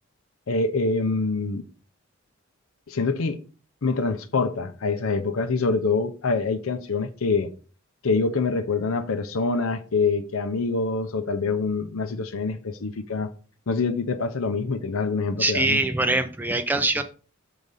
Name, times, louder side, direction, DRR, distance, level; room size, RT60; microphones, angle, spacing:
voice 1, 0.5-1.6 2.9-3.4 3.8-7.5 8.0-13.3 13.7-15.8, left 4 dB, 90° left, 0.7 m, -25 dB
voice 2, 15.4-17.0, right 2 dB, 10° right, 0.4 m, -23 dB
6.5 x 3.9 x 5.4 m
head